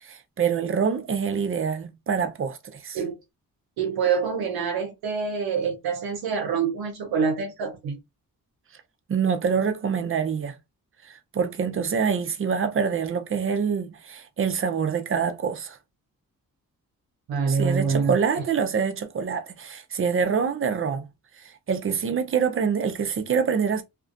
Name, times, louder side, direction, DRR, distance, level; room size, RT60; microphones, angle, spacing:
voice 1, 0.0-3.0 9.1-10.5 11.0-15.8 17.5-21.1 21.4-23.8, right 6 dB, 35° right, 0.5 m, -26 dB
voice 2, 3.8-8.0 17.3-18.5, right 5 dB, 80° right, 0.6 m, -26 dB
2.4 x 2.1 x 2.4 m
cardioid pair, 60°, 36 cm